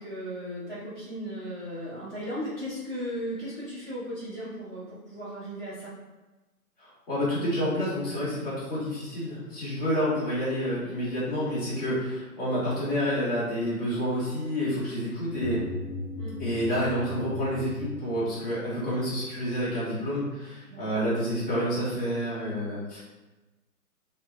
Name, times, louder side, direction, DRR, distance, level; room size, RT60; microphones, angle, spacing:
voice 1, 0.0-5.9 16.1-16.4 20.7-20.8, equal, 5° left, -22 dB, 0.7 m, -36 dB
voice 2, 6.8-15.6 16.4-23.0, equal, 35° left, -10 dB, 1.5 m, -29 dB
sound 1, 15.3-18.5, left 2 dB, 55° left, 1.0 m, -37 dB
2.9 x 2.3 x 2.5 m, 1.1 s
hypercardioid pair, 160°, 47 cm